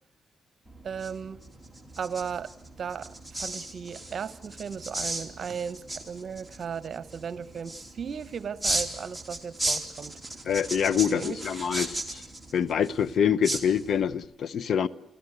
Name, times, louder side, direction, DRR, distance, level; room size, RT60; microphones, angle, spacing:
sound 1, 0.7-14.2, right 2 dB, ahead, 3.4 m, -36 dB
voice 1, 0.8-1.4 2.0-2.5 2.8-10.2 10.9-11.4, right 7 dB, 55° right, 1.0 m, -36 dB
voice 2, 10.4-12.2 12.5-14.9, left 8 dB, 65° left, 0.8 m, -26 dB
29.0 x 15.0 x 8.0 m
cardioid pair, 75°, 0 cm